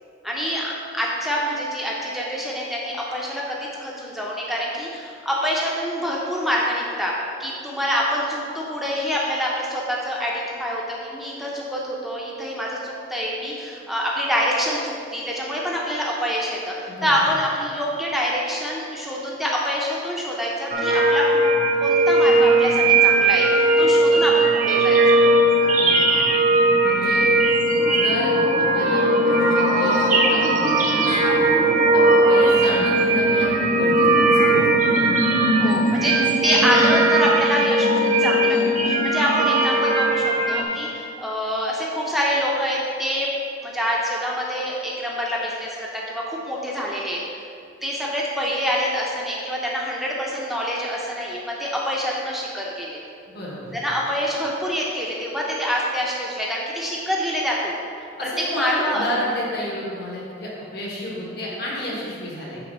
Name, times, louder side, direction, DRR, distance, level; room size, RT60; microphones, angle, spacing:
voice 1, 0.2-3.5 3.8-7.1 7.4-21.4 21.8-25.2 35.6-43.3 43.6-47.2 47.8-53.0 53.7-57.8 58.5-59.1, equal, ahead, -4 dB, 0.6 m, -26 dB
voice 2, 16.9-17.2 25.7-26.3 26.8-27.3 27.9-28.3 28.6-30.4 30.7-31.4 31.9-32.0 32.3-34.9 53.3-53.7 58.2-62.6, equal, 55° left, -4 dB, 1.3 m, -31 dB
sound 1, 20.7-40.6, right 2 dB, 40° right, 0.7 m, -18 dB
5.7 x 3.8 x 5.4 m, 2.5 s
head